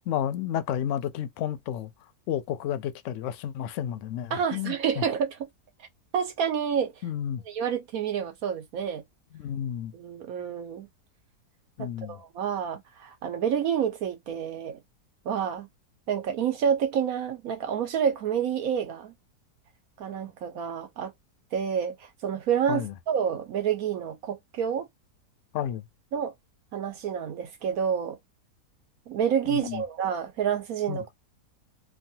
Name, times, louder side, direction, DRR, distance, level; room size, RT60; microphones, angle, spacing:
voice 1, 0.1-1.9 2.3-5.0 7.0-7.4 9.3-9.9 11.8-12.2 22.7-22.9 25.5-25.9 29.5-29.8 30.9-31.0, left 10 dB, 70° left, 0.8 m, -31 dB
voice 2, 4.3-5.4 6.1-6.9 7.5-9.0 9.9-10.9 11.8-14.8 15.2-15.7 16.1-19.1 20.0-21.1 21.5-24.9 26.1-26.3 26.7-28.2 29.1-31.1, right 8 dB, 65° right, 1.3 m, -28 dB
3.1 x 2.3 x 2.7 m
omnidirectional pair, 1.7 m